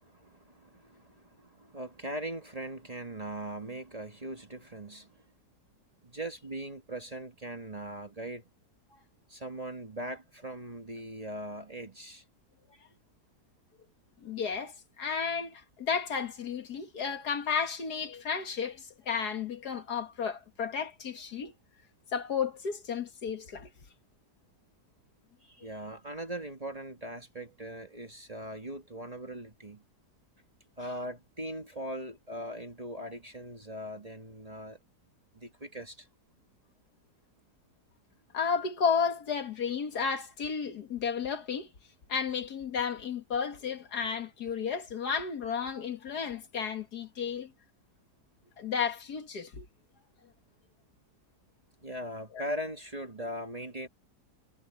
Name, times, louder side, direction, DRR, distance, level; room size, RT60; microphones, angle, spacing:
voice 1, 0.0-5.2 6.0-8.4 9.3-12.2 25.4-29.8 30.8-34.8 35.3-36.1 51.8-53.9, right 1 dB, 25° right, 1.6 m, -40 dB
voice 2, 14.2-21.5 22.1-23.7 38.3-41.7 42.1-47.5 48.6-49.7 52.3-52.4, left 6 dB, 75° left, 2.3 m, -33 dB
omnidirectional pair, 1.7 m